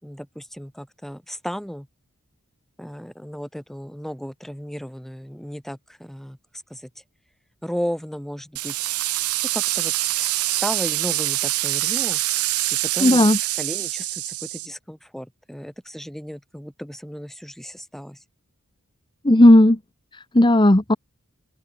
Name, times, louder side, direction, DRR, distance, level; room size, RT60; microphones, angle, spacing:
voice 1, 0.0-1.9 2.8-6.4 6.7-6.9 7.6-8.9 9.5-12.4 12.9-18.2, equal, ahead, 3.8 m, -34 dB
sound 1, 8.6-14.7, right 18 dB, 85° right, 0.8 m, -25 dB
voice 2, 13.0-13.4 19.2-19.8 20.3-21.0, left 1 dB, 20° left, 1.2 m, -13 dB
open air
head